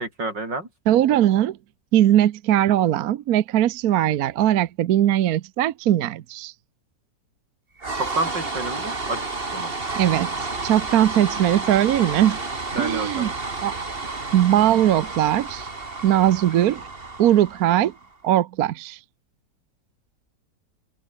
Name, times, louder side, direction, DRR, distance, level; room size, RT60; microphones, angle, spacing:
voice 1, 0.0-0.7 8.0-9.7 12.8-13.3, right 2 dB, 90° right, 7.2 m, -29 dB
voice 2, 0.9-1.6 1.9-6.5 9.9-12.4 12.8-13.3 13.6-13.7 14.3-15.7 16.0-16.9 17.2-17.9 18.2-19.0, right 12 dB, 65° right, 1.1 m, -20 dB
sound 1, 7.8-18.1, right 3 dB, 30° right, 2.8 m, -31 dB
omnidirectional pair, 1.9 m